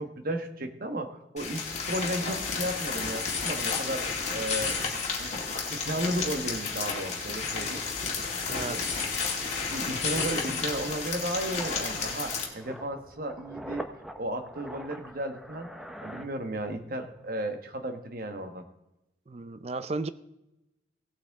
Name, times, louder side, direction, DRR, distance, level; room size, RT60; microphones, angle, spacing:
voice 1, 0.0-4.7 5.2-5.3 5.7-7.8 8.5-8.8 9.7-13.9 14.2-15.7 16.0-18.6, right 1 dB, 50° right, 6 dB, 1.3 m, -34 dB
sound 1, 1.4-12.4, left 5 dB, 40° left, 2.2 m, -32 dB
sound 2, 7.8-16.9 17.2-17.4, equal, ahead, 0.8 m, -45 dB
voice 2, 8.5-8.9 19.3-20.1, right 3 dB, 35° right, 14 dB, 0.5 m, -34 dB
17.5 x 8.5 x 3.6 m, 0.92 s
head